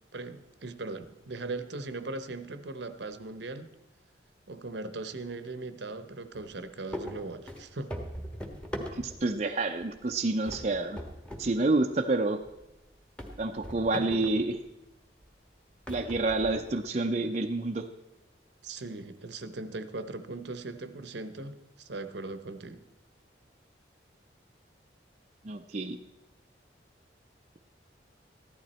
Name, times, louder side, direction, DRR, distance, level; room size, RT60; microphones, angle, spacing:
voice 1, 0.1-3.7 4.5-8.0 18.6-22.8, right 2 dB, 70° right, 11 dB, 0.8 m, -39 dB
sound 1, 6.3-6.6 6.9-9.4 9.8-10.2 10.5-11.5 11.8-11.9 12.5-12.6 13.2-14.5 15.2-15.3 15.9-16.9, equal, 5° left, 1.3 m, -40 dB
voice 2, 8.9-11.0 11.4-12.4 13.4-14.6 15.9-17.9 25.4-26.0, right 2 dB, 35° right, 4 dB, 0.5 m, -28 dB
14.5 x 12.0 x 4.3 m, 1.0 s
head